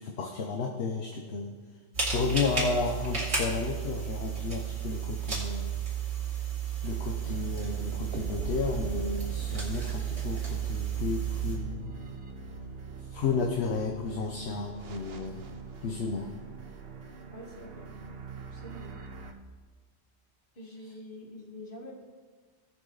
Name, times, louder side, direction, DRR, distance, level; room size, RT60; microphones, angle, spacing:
voice 1, 0.0-1.5 2.1-5.8 6.8-11.9 13.1-15.4 15.8-16.3, left 4 dB, 60° left, 2 dB, 1.1 m, -32 dB
sound 1, 1.9-11.6, right 7 dB, 70° right, 2.8 m, -33 dB
sound 2, 6.9-19.3, right 3 dB, 55° right, 1.0 m, -43 dB
voice 2, 17.3-17.9 18.5-19.0 20.6-22.0, left 1 dB, 45° left, 0 dB, 1.9 m, -46 dB
16.5 x 6.1 x 4.0 m, 1.4 s
omnidirectional pair, 1.3 m